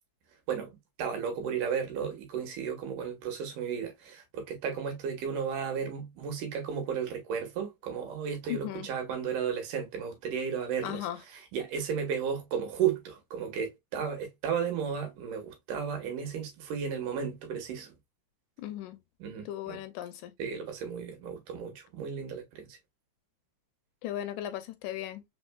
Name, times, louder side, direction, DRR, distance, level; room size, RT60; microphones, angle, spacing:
voice 1, 1.0-11.1 11.3-17.9 19.2-19.8 20.4-22.8, right 7 dB, 85° right, 2.9 m, -34 dB
voice 2, 8.5-8.9 10.8-11.2 18.6-19.0 19.5-20.3 24.0-25.2, left 12 dB, 80° left, 1.9 m, -37 dB
5.2 x 3.8 x 2.2 m
omnidirectional pair, 3.6 m